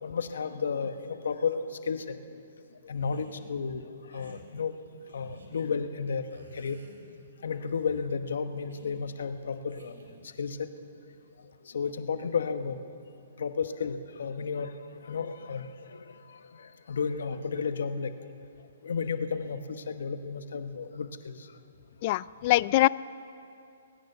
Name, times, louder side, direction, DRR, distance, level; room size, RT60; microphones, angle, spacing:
voice 1, 0.0-2.2 2.8-3.8 4.1-4.7 5.1-6.8 7.4-9.9 10.4-10.7 11.7-12.8 13.4-14.8 15.0-16.0 16.6-18.1 18.8-21.3, left 5 dB, 75° left, 9 dB, 1.0 m, -32 dB
sound 1, 2.9-3.6 4.1-4.4 5.1-5.7 6.3-7.3 7.6-8.1 8.7-9.0 9.7-10.3, right 2 dB, 90° right, 3.1 m, -52 dB
voice 2, 22.0-22.9, left 18 dB, 40° left, 19 dB, 0.3 m, -23 dB
20.5 x 9.5 x 6.7 m, 2.6 s
hypercardioid pair, 155°, 0 cm